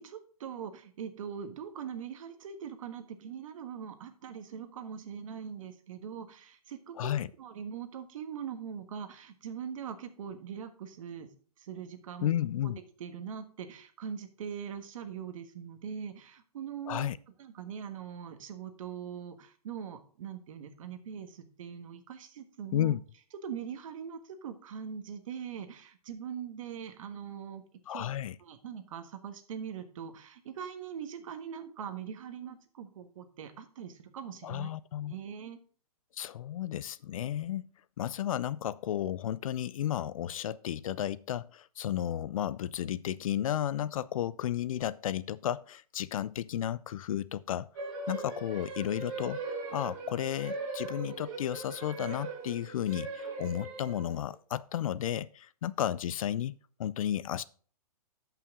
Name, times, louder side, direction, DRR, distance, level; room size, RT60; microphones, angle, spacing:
voice 1, 0.0-11.3 11.6-12.3 12.6-12.7 13.0-17.1 17.4-23.0 23.4-27.6 27.9-28.1 28.4-34.7 35.0-35.6, right 7 dB, 60° right, 1.4 m, -42 dB
voice 2, 7.0-7.3 12.2-12.8 16.9-17.2 22.7-23.0 27.9-28.4 34.4-35.1 36.1-37.7 38.0-47.7 48.1-49.4 49.7-57.4, left 11 dB, 60° left, 0.5 m, -33 dB
sound 1, 47.8-54.3, right 3 dB, 35° right, 3.3 m, -40 dB
12.5 x 5.8 x 3.7 m
hypercardioid pair, 145°, 20 cm